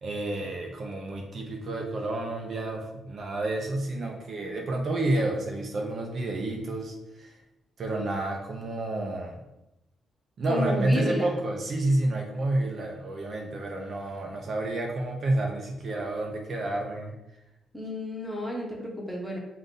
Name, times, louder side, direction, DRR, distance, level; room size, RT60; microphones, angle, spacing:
voice 1, 0.0-7.4 7.8-9.4 10.4-17.1, right 2 dB, 45° right, 1 dB, 0.5 m, -29 dB
voice 2, 10.5-11.4 17.7-19.4, left 1 dB, 5° left, -2 dB, 0.9 m, -32 dB
3.9 x 2.6 x 3.7 m, 0.91 s
cardioid pair, 135°, 0 cm